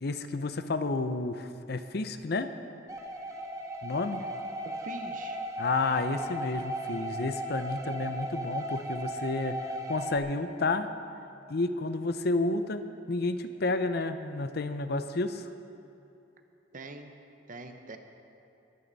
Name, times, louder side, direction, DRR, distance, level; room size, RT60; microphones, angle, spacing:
voice 1, 0.0-2.5 3.8-4.2 5.6-9.6 9.9-10.9 11.5-15.5, left 3 dB, 55° left, 10 dB, 0.7 m, -31 dB
sound 1, 2.9-10.2, right 1 dB, 15° right, 0.9 m, -36 dB
voice 2, 4.8-5.4 16.7-17.1 17.5-18.0, right 2 dB, 45° right, 6 dB, 0.9 m, -43 dB
21.0 x 9.4 x 4.1 m, 2.8 s
head